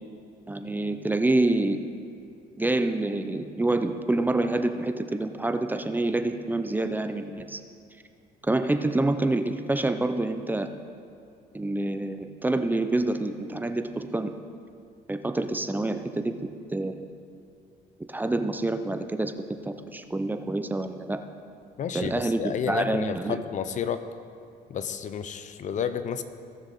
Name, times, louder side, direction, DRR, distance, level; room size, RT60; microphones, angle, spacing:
voice 1, 0.5-1.8 2.6-7.6 8.4-10.7 11.5-14.3 15.1-16.4 16.7-17.1 18.1-21.2 21.9-23.4, right 2 dB, 10° right, 8 dB, 0.5 m, -27 dB
voice 2, 21.8-24.0 24.7-26.2, left 8 dB, 45° left, 11 dB, 0.7 m, -31 dB
17.5 x 6.3 x 4.2 m, 2.5 s
cardioid pair, 110°, 17 cm